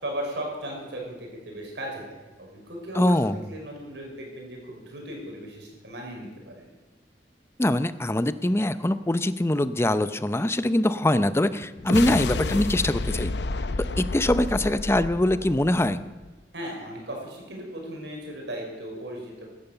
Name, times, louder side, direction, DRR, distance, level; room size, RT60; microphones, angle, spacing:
voice 1, 0.0-2.0 2.4-3.2 3.5-6.7 16.5-19.5, right 1 dB, 80° right, 0 dB, 5.9 m, -36 dB
voice 2, 3.0-3.5 7.6-13.3 14.0-16.0, left 1 dB, 15° left, 12 dB, 0.6 m, -23 dB
sound 1, 11.8-16.3, left 3 dB, 70° left, 0.7 m, -30 dB
16.0 x 12.5 x 6.8 m, 1.2 s
head